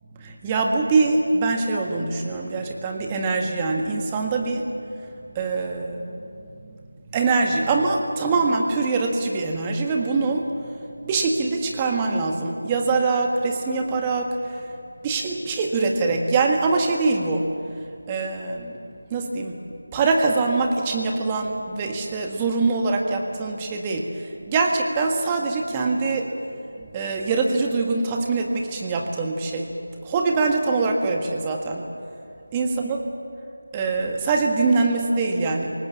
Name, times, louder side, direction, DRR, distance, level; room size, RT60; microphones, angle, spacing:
voice 1, 0.2-4.7 5.3-6.2 7.1-10.4 11.0-14.3 15.0-17.5 18.1-18.8 19.1-19.6 19.9-24.0 24.5-26.3 26.9-29.7 30.0-31.8 32.5-33.0 33.7-35.7, right 3 dB, 15° right, 2 dB, 1.7 m, -23 dB
28.0 x 19.0 x 7.6 m, 2.5 s
figure-of-eight pair, 165°, 0 cm